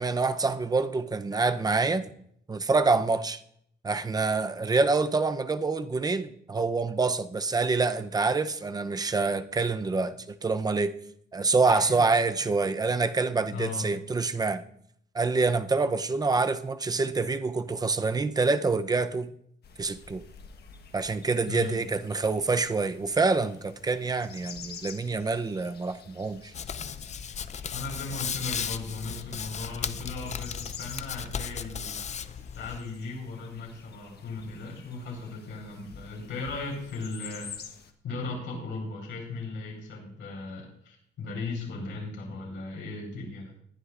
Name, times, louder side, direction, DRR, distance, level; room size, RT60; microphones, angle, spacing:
voice 1, 0.0-2.0 2.5-3.4 3.8-10.9 11.3-14.6 15.1-19.3 19.8-20.2 20.9-26.5, right 3 dB, 20° right, 10 dB, 0.6 m, -26 dB
voice 2, 11.7-12.0 12.3-12.5 13.5-13.9 21.5-21.8 27.7-32.0 32.5-37.5 38.0-43.5, left 3 dB, 90° left, -1 dB, 4.6 m, -37 dB
sound 1, 19.6-37.9, left 6 dB, 55° left, 1.3 m, -49 dB
Hands, 26.5-32.8, left 7 dB, 35° left, 0.5 m, -36 dB
20.0 x 11.0 x 2.5 m, 0.66 s
cardioid pair, 155°, 20 cm